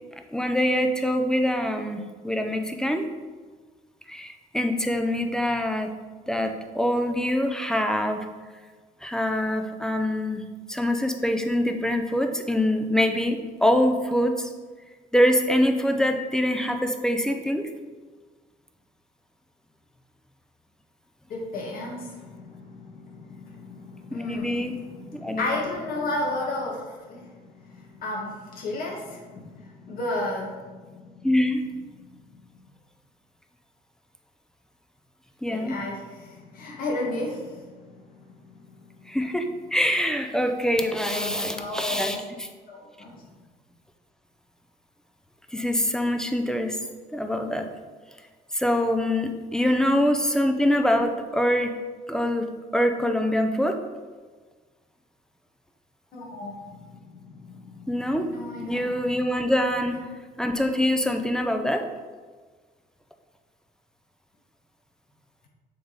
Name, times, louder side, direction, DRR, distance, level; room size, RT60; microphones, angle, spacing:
voice 1, 0.3-3.1 4.1-5.9 6.3-8.2 9.0-10.4 10.7-14.5 15.1-17.6 24.1-24.8 25.1-25.6 31.2-31.6 35.4-35.8 39.1-42.5 45.5-46.8 47.1-47.7 48.5-51.7 52.1-52.4 52.7-53.8 57.9-58.3 58.6-60.0 60.4-61.8, left 1 dB, 5° left, 5 dB, 0.5 m, -24 dB
voice 2, 21.3-31.3 32.1-32.2 35.5-38.6 38.9-39.0 41.0-42.2 42.7-43.1 49.8-50.1 56.1-58.9, left 2 dB, 60° left, -3 dB, 1.7 m, -34 dB
6.7 x 3.6 x 4.1 m, 1.4 s
cardioid pair, 110°, 17 cm